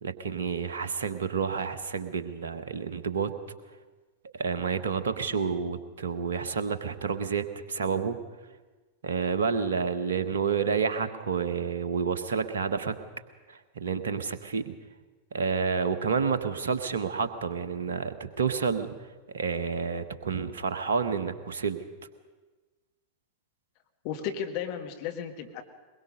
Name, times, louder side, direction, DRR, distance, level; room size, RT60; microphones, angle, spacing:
voice 1, 0.0-3.3 4.2-8.2 9.0-12.9 13.5-14.7 15.3-18.9 19.3-21.8, right 6 dB, 65° right, 9 dB, 1.3 m, -29 dB
voice 2, 24.0-25.6, left 8 dB, 45° left, 5 dB, 1.7 m, -34 dB
22.0 x 22.0 x 5.4 m, 1.3 s
figure-of-eight pair, 90°, 0 cm